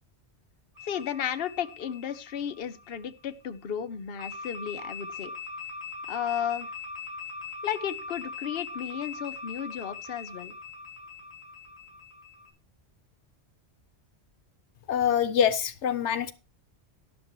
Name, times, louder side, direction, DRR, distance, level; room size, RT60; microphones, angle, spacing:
sound 1, 0.7-3.3 4.2-12.5, left 4 dB, 15° right, 7.0 m, -41 dB
voice 1, 0.8-5.3 6.1-6.7 7.6-10.5, left 9 dB, 60° left, 1.0 m, -33 dB
voice 2, 14.9-16.3, left 8 dB, 80° left, 1.0 m, -25 dB
12.5 x 11.5 x 3.1 m
omnidirectional pair, 1.2 m